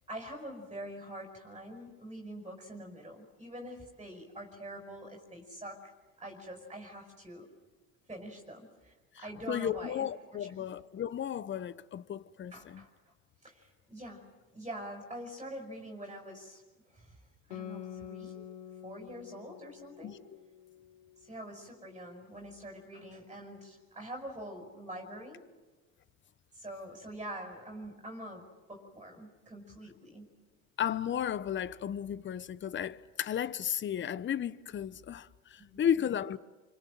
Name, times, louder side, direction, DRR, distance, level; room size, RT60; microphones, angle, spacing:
voice 1, 0.1-5.9 6.2-7.5 8.1-10.1 10.3-10.5 12.5-12.9 13.4-14.2 14.5-16.6 16.9-17.2 17.5-18.5 18.8-20.2 21.2-25.4 26.5-30.3 35.6-36.1, right 1 dB, 10° right, 5.5 m, -45 dB
voice 2, 9.5-12.8 20.0-20.2 30.8-36.4, left 9 dB, 25° left, 1.0 m, -34 dB
Guitar, 17.5-22.4, left 10 dB, 70° left, 2.4 m, -48 dB
28.0 x 25.5 x 7.7 m
hypercardioid pair, 90°, 42 cm